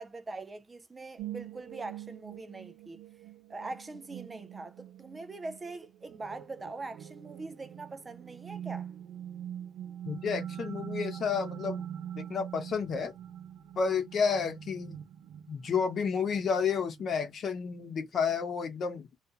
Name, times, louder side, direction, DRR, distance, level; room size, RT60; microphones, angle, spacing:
voice 1, 0.0-3.0 3.5-8.9, right 3 dB, 15° right, 0.3 m, -42 dB
sound 1, 1.2-17.4, right 10 dB, 85° right, 0.6 m, -44 dB
voice 2, 10.0-11.9 12.2-13.1 13.8-14.9 15.5-19.1, left 6 dB, 40° left, 0.8 m, -31 dB
2.4 x 2.4 x 2.7 m
cardioid pair, 155°, 0 cm